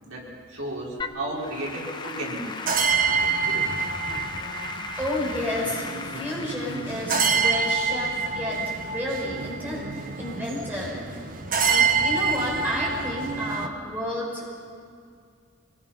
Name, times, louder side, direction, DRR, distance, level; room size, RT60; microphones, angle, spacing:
voice 1, 0.0-2.5, right 1 dB, 85° right, -4 dB, 5.1 m, -33 dB
Applause / Keyboard (musical), 1.0-10.3, left 4 dB, 20° left, 0.6 m, -38 dB
sound 1, 2.6-13.7, right 5 dB, 40° right, 1.0 m, -27 dB
voice 2, 5.0-11.0 11.6-14.5, left 1 dB, 10° right, -4 dB, 5.4 m, -31 dB
24.5 x 20.0 x 5.9 m, 2.3 s
head